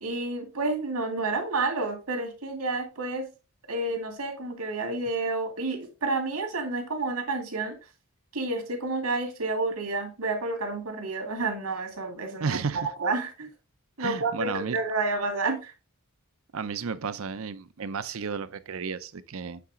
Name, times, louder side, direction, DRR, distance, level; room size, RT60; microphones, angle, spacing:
voice 1, 0.0-3.3 3.7-7.8 8.3-13.5 14.0-15.7, right 3 dB, 85° right, 2.3 m, -30 dB
voice 2, 12.4-12.9 14.0-14.8 16.5-19.6, right 5 dB, 65° right, 0.5 m, -32 dB
8.5 x 4.1 x 3.7 m
head